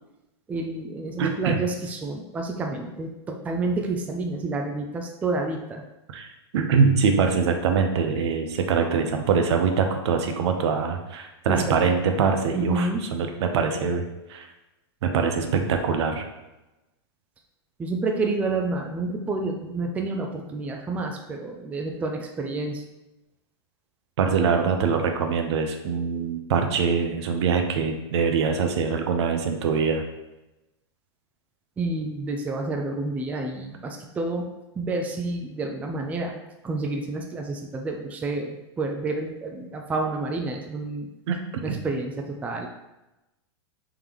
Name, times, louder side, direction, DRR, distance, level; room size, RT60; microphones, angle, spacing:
voice 1, 0.5-5.8 11.5-12.1 12.5-13.0 17.8-22.8 31.8-34.5 34.8-36.3 36.6-41.1 41.6-42.7, right 3 dB, 10° right, 2 dB, 0.3 m, -29 dB
voice 2, 1.2-1.6 6.1-14.0 14.3-14.5 15.0-16.2 24.2-30.1 41.3-41.4 41.7-41.8, right 5 dB, 70° right, 5 dB, 0.7 m, -23 dB
3.6 x 3.4 x 3.0 m, 0.99 s
hypercardioid pair, 130°, 15 cm